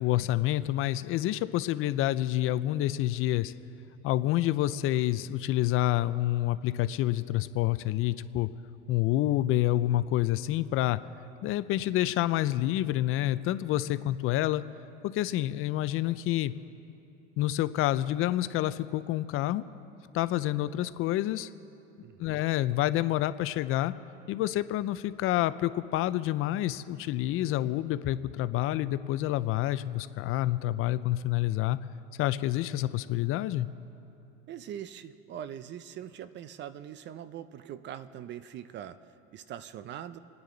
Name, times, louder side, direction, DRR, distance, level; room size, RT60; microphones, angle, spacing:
voice 1, 0.0-3.5 4.0-8.5 8.9-11.0 11.4-14.6 15.0-16.5 17.4-19.6 20.1-21.5 22.2-23.9 24.3-31.8 32.2-33.7, left 14 dB, 45° left, 14 dB, 0.5 m, -28 dB
voice 2, 22.0-22.4 34.5-39.0 39.3-40.2, right 10 dB, 35° right, 14 dB, 0.5 m, -42 dB
28.0 x 9.6 x 3.9 m, 2.8 s
supercardioid pair, 120°, 31 cm